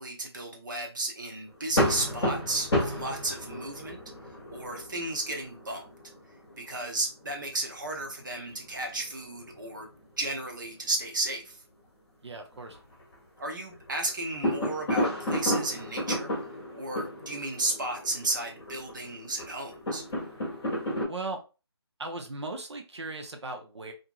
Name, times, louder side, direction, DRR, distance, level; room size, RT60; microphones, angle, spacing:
voice 1, 0.0-4.0 4.5-5.8 6.6-9.9 10.2-11.6 13.4-16.3 16.7-20.0, right 2 dB, 45° right, 3 dB, 0.8 m, -33 dB
sound 1, 1.5-10.7 11.0-11.1 11.4-11.5 12.4-13.4 13.7-21.0, equal, 5° left, 0.5 m, -33 dB
voice 2, 12.2-12.8 21.1-21.4 22.0-23.9, right 2 dB, 85° right, 3 dB, 0.6 m, -37 dB
2.8 x 2.6 x 2.3 m, 0.31 s
figure-of-eight pair, 175°, 14 cm